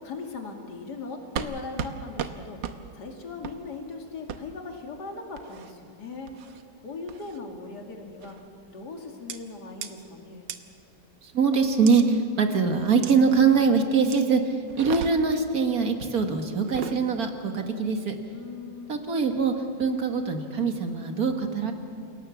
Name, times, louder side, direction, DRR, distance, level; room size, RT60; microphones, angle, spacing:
voice 1, 0.0-2.6 2.9-6.3 6.8-8.4 8.7-10.5 18.3-19.0, left 4 dB, 60° left, 2 dB, 2.9 m, -39 dB
sound 1, 1.4-1.5 1.8-1.9 2.2-2.3 2.6-2.8 3.4-3.6 4.3-4.4 5.4-5.7 6.3-6.6 7.1-7.4 8.2-8.5 9.3-9.4 9.8-9.9 10.5-10.6 11.9-12.0 13.0-13.2 14.1-14.3 14.7-15.4 16.6-17.0, right 8 dB, 80° right, 1.7 m, -35 dB
voice 2, 11.2-18.2 18.9-21.7, right 5 dB, 55° right, 5 dB, 2.1 m, -23 dB
28.0 x 18.0 x 7.1 m, 2.3 s
omnidirectional pair, 2.0 m